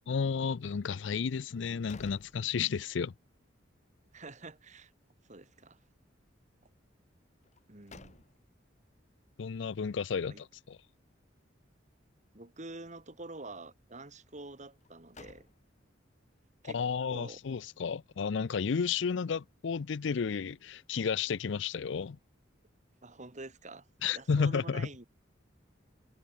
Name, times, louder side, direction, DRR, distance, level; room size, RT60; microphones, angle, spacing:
voice 1, 0.1-3.1 9.4-10.8 16.6-22.2 24.0-24.9, left 6 dB, 70° left, 0.5 m, -32 dB
sound 1, 1.5-3.1 3.5-3.6 7.4-8.7 14.7-16.0, left 3 dB, 40° left, 1.7 m, -55 dB
voice 2, 4.1-4.9 5.3-5.8 7.7-8.2 10.3-10.4 12.3-15.5 16.6-16.8 17.1-17.4 23.0-23.9 24.1-25.1, right 2 dB, 40° right, 2.6 m, -47 dB
head